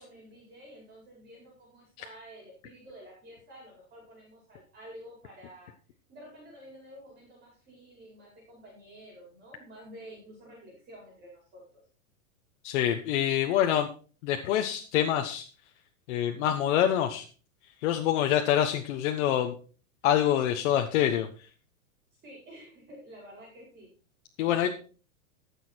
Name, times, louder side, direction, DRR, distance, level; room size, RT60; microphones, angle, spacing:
voice 1, 0.0-5.7 6.1-11.8 22.2-23.9 24.4-24.7, equal, 20° right, -2 dB, 4.8 m, -50 dB
voice 2, 12.6-13.9 14.2-15.4 16.1-17.2 17.8-19.5 20.0-21.3 24.4-24.7, left 11 dB, 55° left, 5 dB, 1.2 m, -26 dB
15.0 x 6.6 x 4.4 m, 0.39 s
supercardioid pair, 145°, 43 cm